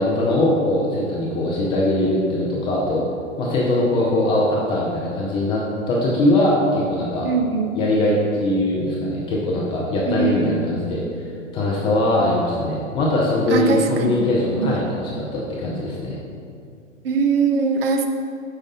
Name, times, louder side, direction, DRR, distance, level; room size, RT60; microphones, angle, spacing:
voice 1, 0.0-3.0 3.4-5.6 5.9-7.3 7.7-11.0 11.5-16.2, left 1 dB, 15° left, -4 dB, 0.4 m, -21 dB
voice 2, 7.2-7.7 10.1-10.7 13.5-14.2 14.6-14.7 17.0-18.1, right 4 dB, 45° right, 5 dB, 0.6 m, -21 dB
6.3 x 5.4 x 3.7 m, 2.4 s
hypercardioid pair, 115°, 40 cm